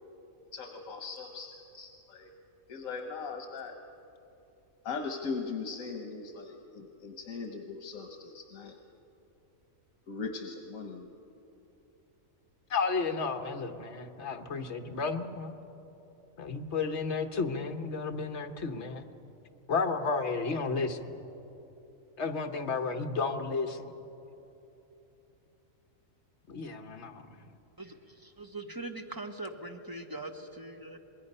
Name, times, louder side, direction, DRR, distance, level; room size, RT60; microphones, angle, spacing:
voice 1, 0.5-2.3 2.7-3.8 4.8-8.8 10.1-11.1, left 4 dB, 80° left, 4 dB, 1.5 m, -39 dB
voice 2, 12.7-15.5 16.4-19.0 19.7-21.1 22.2-23.9 26.5-27.4, left 4 dB, 55° left, 6 dB, 1.4 m, -32 dB
voice 3, 27.8-31.0, right 2 dB, 15° right, 3 dB, 1.2 m, -42 dB
27.0 x 21.0 x 5.5 m, 3.0 s
omnidirectional pair, 1.4 m